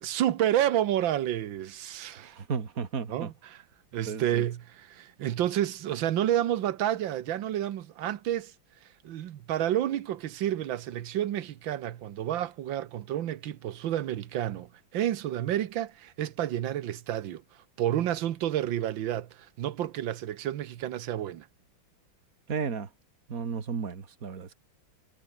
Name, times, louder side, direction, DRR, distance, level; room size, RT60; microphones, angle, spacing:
voice 1, 0.0-2.4 3.1-3.6 3.9-8.5 9.0-17.4 17.8-21.5, right 12 dB, 75° right, 1.7 m, -30 dB
voice 2, 2.2-3.3 4.1-4.4 22.5-22.9 23.3-24.5, right 6 dB, 45° right, 2.4 m, -34 dB
omnidirectional pair, 2.2 m